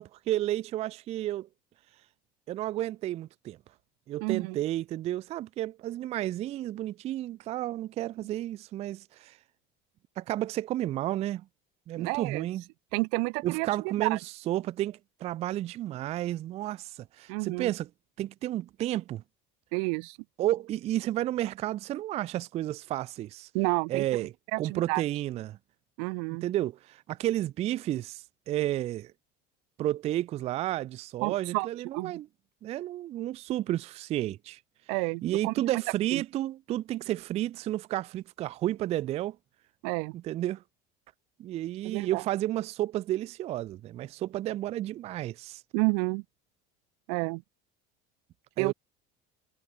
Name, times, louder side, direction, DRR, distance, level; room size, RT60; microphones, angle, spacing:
voice 1, 0.0-1.5 2.5-3.6 4.1-9.4 10.2-11.5 11.9-12.6 13.4-14.2 14.5-17.9 18.2-19.2 20.4-23.5 23.9-24.3 24.6-25.6 26.4-29.1 29.8-32.3 32.6-34.6 35.2-39.4 40.1-40.6 41.4-45.6 48.6-48.7, right 14 dB, 30° right, 0.3 m, -32 dB
voice 2, 4.2-4.6 8.2-8.3 12.0-12.5 12.9-14.2 17.3-17.7 19.7-20.2 23.5-24.0 24.5-25.0 26.0-26.4 31.2-31.7 31.9-32.1 34.9-35.5 36.1-36.2 39.8-40.1 41.8-42.2 45.7-46.2 47.1-47.4 48.6-48.7, right 40 dB or more, 85° right, 0.8 m, -30 dB
cardioid pair, 165°, 21 cm